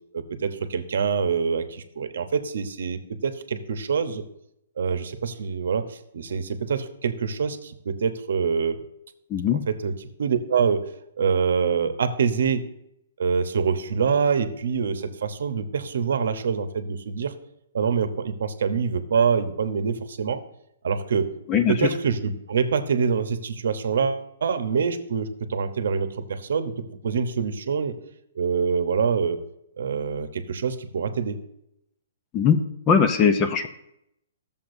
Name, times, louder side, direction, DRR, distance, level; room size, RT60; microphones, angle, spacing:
voice 1, 0.1-4.2 4.8-8.8 9.7-10.9 11.2-12.6 13.2-17.3 17.7-20.4 20.8-21.3 21.7-26.7 27.0-28.0 28.4-29.4 29.8-31.4, right 6 dB, 65° right, 10 dB, 0.9 m, -25 dB
voice 2, 9.3-9.6 21.5-21.9 32.3-32.6 32.9-33.7, left 7 dB, 15° left, 8 dB, 0.5 m, -20 dB
13.5 x 7.1 x 2.6 m, 0.77 s
hypercardioid pair, 170°, 0 cm